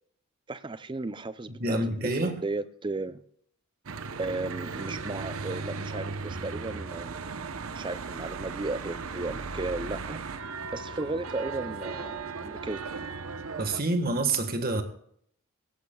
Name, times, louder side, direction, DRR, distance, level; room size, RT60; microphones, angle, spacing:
voice 1, 0.5-3.2 4.2-7.3 7.7-10.2 10.7-12.8, right 2 dB, 20° right, 13 dB, 0.5 m, -35 dB
voice 2, 1.6-2.4 13.6-14.8, right 2 dB, 40° right, 7 dB, 1.5 m, -27 dB
Church bell / Traffic noise roadway noise, 3.9-13.8, right 4 dB, 75° right, 0.8 m, -37 dB
17.5 x 16.0 x 2.3 m, 0.66 s
head